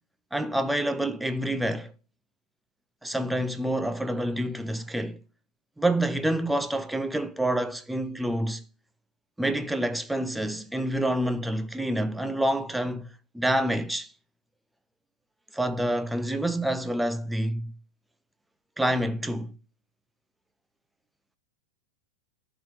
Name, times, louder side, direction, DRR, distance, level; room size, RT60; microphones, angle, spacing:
voice 1, 0.3-1.9 3.0-5.2 5.8-8.6 9.4-13.1 13.3-14.1 15.5-17.7 18.8-19.5, right 1 dB, 5° right, 0.5 m, -27 dB
11.5 x 3.9 x 3.9 m
figure-of-eight pair, 90°, 0 cm